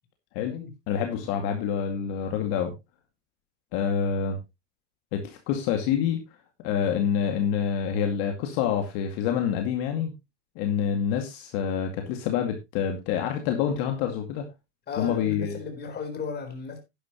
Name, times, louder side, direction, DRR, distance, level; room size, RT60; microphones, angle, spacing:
voice 1, 0.9-2.7 3.7-4.4 5.1-6.2 6.6-10.1 10.6-14.4 15.0-15.6, left 8 dB, 60° left, 2.2 m, -27 dB
voice 2, 14.9-16.8, left 5 dB, 30° left, 4.1 m, -35 dB
11.0 x 11.0 x 3.0 m
supercardioid pair, 125°, 35 cm